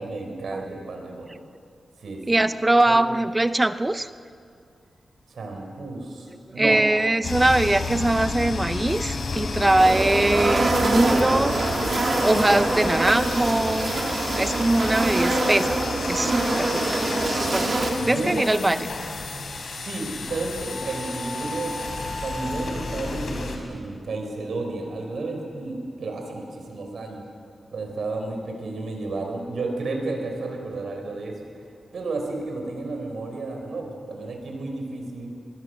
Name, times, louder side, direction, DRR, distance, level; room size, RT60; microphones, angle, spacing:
voice 1, 0.0-1.4 2.0-2.5 2.9-3.0 5.3-6.8 18.0-18.5 19.7-21.7 22.2-27.2 27.7-31.7 31.9-35.3, right 3 dB, 75° right, 3 dB, 4.7 m, -32 dB
voice 2, 2.3-4.1 6.6-11.5 12.2-13.9 14.3-15.8 16.1-17.0 17.4-18.8, right 2 dB, 20° right, 12 dB, 0.7 m, -22 dB
sound 1, 7.2-23.6, left 3 dB, 70° left, 3.8 m, -31 dB
sound 2, 9.8-17.9, right 2 dB, 55° right, 3.1 m, -25 dB
23.0 x 21.0 x 6.6 m, 2.3 s
cardioid pair, 80°, 0 cm